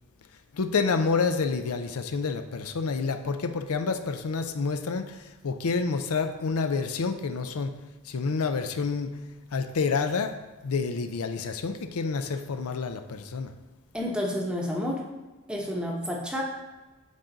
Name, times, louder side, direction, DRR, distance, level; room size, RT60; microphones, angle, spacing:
voice 1, 0.5-7.7 8.0-9.1 9.5-13.5, left 4 dB, 80° left, 8 dB, 0.5 m, -28 dB
voice 2, 13.9-15.0 15.5-16.4, left 1 dB, 5° right, -1 dB, 0.8 m, -30 dB
8.9 x 3.8 x 3.9 m, 1.2 s
head